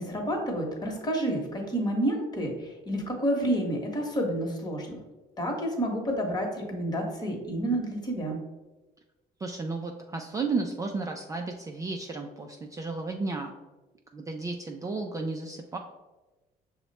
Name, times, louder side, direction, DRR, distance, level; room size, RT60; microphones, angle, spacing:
voice 1, 0.0-5.0 5.4-8.4, right 1 dB, 25° left, 1 dB, 1.1 m, -29 dB
voice 2, 9.4-13.5 14.1-15.8, right 3 dB, 20° right, 2 dB, 0.3 m, -33 dB
5.8 x 2.1 x 4.0 m, 1.1 s
cardioid pair, 110°, 17 cm